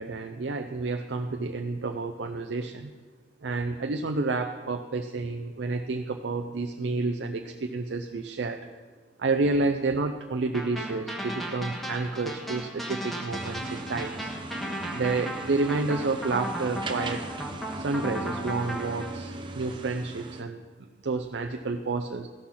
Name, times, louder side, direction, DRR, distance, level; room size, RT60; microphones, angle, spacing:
voice 1, 0.0-2.9 3.4-8.6 9.2-14.3 14.9-17.2 17.8-22.3, right 3 dB, 80° right, 5 dB, 0.5 m, -30 dB
sound 1, 10.5-19.1, right 1 dB, ahead, 1.4 m, -36 dB
sound 2, 13.3-20.4, right 2 dB, 25° right, 0.7 m, -38 dB
14.5 x 6.2 x 5.7 m, 1.4 s
head